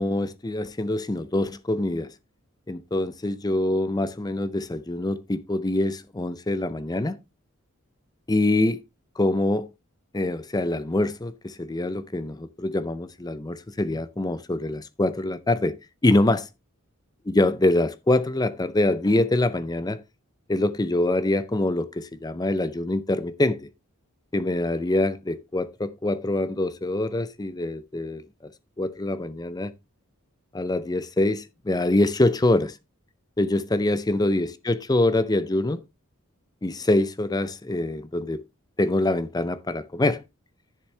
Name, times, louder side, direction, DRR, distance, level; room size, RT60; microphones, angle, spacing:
voice 1, 0.0-2.1 2.7-7.2 8.3-8.8 9.2-9.7 10.1-15.8 16.0-16.5 17.3-20.0 20.5-23.7 24.3-28.5 28.8-29.7 30.5-32.8 33.4-35.8 36.6-38.4 38.8-40.2, left 2 dB, 20° left, 0.6 m, -24 dB
11.0 x 6.8 x 3.3 m
head